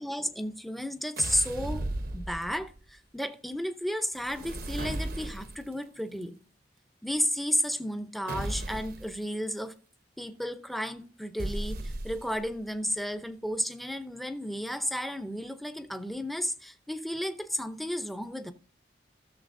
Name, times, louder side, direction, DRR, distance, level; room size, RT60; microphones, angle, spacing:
voice 1, 0.0-1.9 2.1-6.4 7.0-9.7 10.2-18.5, equal, ahead, 0.7 m, -33 dB
sound 1, 1.2-2.8 4.2-5.7 8.3-9.1 11.4-12.5, right 1 dB, 55° right, 0.8 m, -35 dB
16.0 x 6.8 x 2.6 m
head